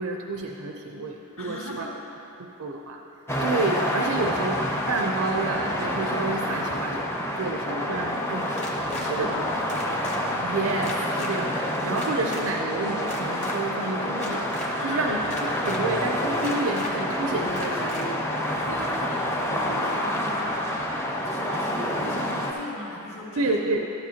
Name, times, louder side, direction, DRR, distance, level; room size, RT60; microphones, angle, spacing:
voice 1, 0.0-1.9 2.4-3.0 3.4-8.7 9.0-9.4 10.4-14.5 14.8-15.2 15.6-18.2 23.4-23.8, right 3 dB, 75° right, 1 dB, 0.6 m, -29 dB
voice 2, 1.4-1.9 9.0-10.0 14.7-15.2 18.5-20.6 21.2-23.6, left 1 dB, 60° left, -5 dB, 2.1 m, -38 dB
sound 1, 3.3-22.5, left 1 dB, 10° left, 0.6 m, -28 dB
sound 2, 8.6-9.1 9.7-10.2 10.8-11.3 12.0-12.4 13.0-13.6 14.1-14.7 15.3-15.8 16.4-16.9 17.6-18.0, left 2 dB, 30° left, 1.2 m, -36 dB
12.5 x 10.5 x 2.8 m, 3.0 s
head